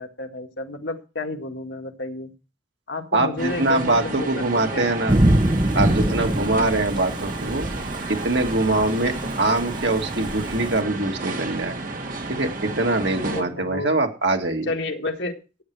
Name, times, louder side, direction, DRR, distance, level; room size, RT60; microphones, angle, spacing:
voice 1, 0.0-2.3 2.9-4.9 13.3-14.0 14.6-15.4, left 2 dB, 80° left, 3 dB, 2.0 m, -31 dB
voice 2, 3.1-5.2 5.7-7.7 8.1-11.7 12.3-14.7, right 2 dB, 80° right, 3 dB, 2.1 m, -23 dB
sound 1, 3.4-13.4, right 2 dB, 50° right, 2.1 m, -32 dB
Thunder / Rain, 5.1-10.8, right 1 dB, 30° right, 0.9 m, -24 dB
14.5 x 9.4 x 4.7 m, 0.32 s
head